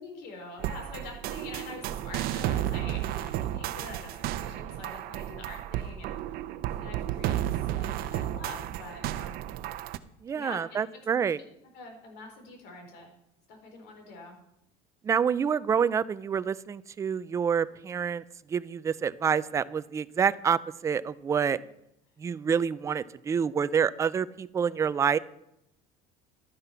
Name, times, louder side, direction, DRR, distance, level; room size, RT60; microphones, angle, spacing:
voice 1, 0.0-6.2 6.8-9.5 10.3-11.5 11.7-13.1 13.5-14.4, left 3 dB, 65° left, 3 dB, 4.1 m, -45 dB
sound 1, 0.6-10.0, right 12 dB, 55° right, 0.7 m, -33 dB
voice 2, 10.2-11.4 15.0-18.2 18.5-21.6 22.2-25.2, right 7 dB, 15° right, 16 dB, 0.3 m, -27 dB
12.0 x 9.7 x 5.6 m, 0.80 s
cardioid pair, 160°, 18 cm